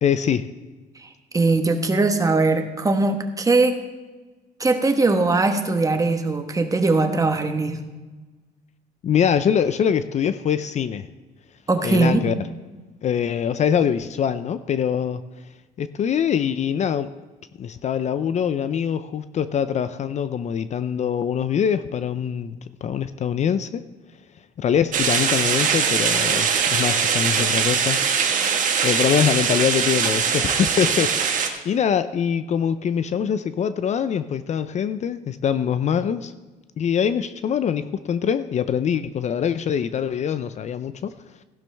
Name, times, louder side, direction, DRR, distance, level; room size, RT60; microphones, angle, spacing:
voice 1, 0.0-0.5 9.0-11.1 11.8-12.3 13.0-15.2 15.8-17.1 17.6-23.8 24.6-28.0 28.8-36.3 36.8-41.1, left 8 dB, 45° left, 13 dB, 0.5 m, -23 dB
voice 2, 1.0-3.8 4.6-7.9 11.7-12.2, right 3 dB, 20° right, 6 dB, 1.3 m, -20 dB
sound 1, 24.9-31.5, right 6 dB, 50° right, 1.5 m, -21 dB
15.5 x 11.5 x 3.4 m, 1.2 s
cardioid pair, 110°, 17 cm